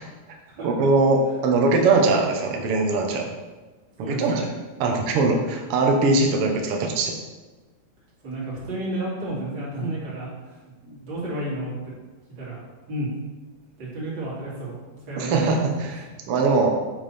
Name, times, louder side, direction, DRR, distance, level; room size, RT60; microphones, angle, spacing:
voice 1, 0.6-3.2 4.1-4.4 4.8-7.1 15.2-16.0 16.3-16.7, right 3 dB, 65° right, 2 dB, 1.5 m, -21 dB
voice 2, 4.0-4.5 8.2-10.6 10.8-11.7 12.3-12.6 12.9-13.1 13.8-15.6 15.9-16.0, right 1 dB, 35° right, -8 dB, 3.2 m, -31 dB
7.9 x 7.0 x 4.3 m, 1.2 s
omnidirectional pair, 4.0 m